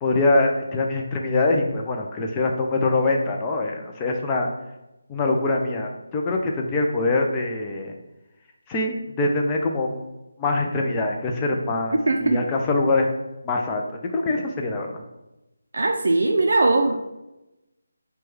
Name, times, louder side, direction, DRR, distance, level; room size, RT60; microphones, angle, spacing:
voice 1, 0.0-4.5 5.1-7.9 8.7-10.1 10.4-13.1 13.4-15.0, left 2 dB, 15° left, 1 dB, 0.4 m, -24 dB
voice 2, 12.1-12.4 15.7-17.0, right 2 dB, 65° right, 2 dB, 0.4 m, -20 dB
6.0 x 2.2 x 3.2 m, 0.96 s
figure-of-eight pair, 170°, 0 cm